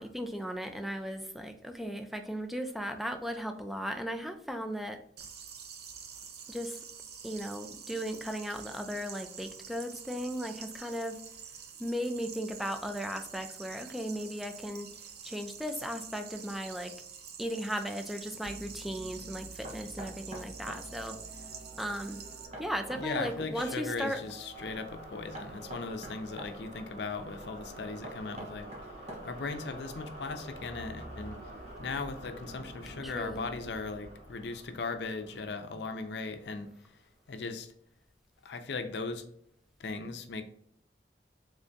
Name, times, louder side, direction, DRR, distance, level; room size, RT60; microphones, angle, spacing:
voice 1, 0.0-5.0 6.5-6.8 7.2-11.2 11.8-14.9 15.2-16.9 17.4-21.2 21.8-22.2 22.6-24.2 33.0-33.5, equal, ahead, 6 dB, 0.3 m, -36 dB
sound 1, 5.2-22.5, right 7 dB, 60° right, 0.6 m, -47 dB
sound 2, 18.4-36.9, right 1 dB, 80° right, 1.5 m, -48 dB
Knock, 19.6-20.9 22.5-23.8 25.3-26.5 28.0-29.5, right 1 dB, 40° right, 0.9 m, -45 dB
voice 2, 23.0-28.7 29.2-31.4 31.8-36.7 37.3-37.7 38.4-39.2 39.8-40.4, left 4 dB, 70° left, 7 dB, 0.5 m, -38 dB
3.6 x 3.3 x 2.6 m, 0.70 s
head